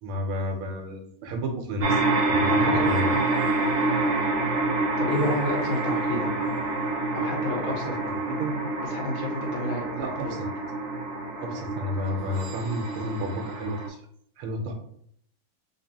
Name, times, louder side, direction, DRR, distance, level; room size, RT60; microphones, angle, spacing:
voice 1, 0.0-3.2 7.9-8.6 10.0-10.5 11.4-14.0 14.4-14.7, equal, 85° right, 4 dB, 1.6 m, -31 dB
sound 1, 1.8-13.9, right 2 dB, 55° right, 0.8 m, -27 dB
voice 2, 2.5-2.8 5.0-6.3 7.1-7.8 8.9-9.8 10.2-10.4, left 2 dB, 70° left, 0 dB, 1.6 m, -30 dB
3.9 x 2.9 x 2.8 m, 0.67 s
omnidirectional pair, 2.3 m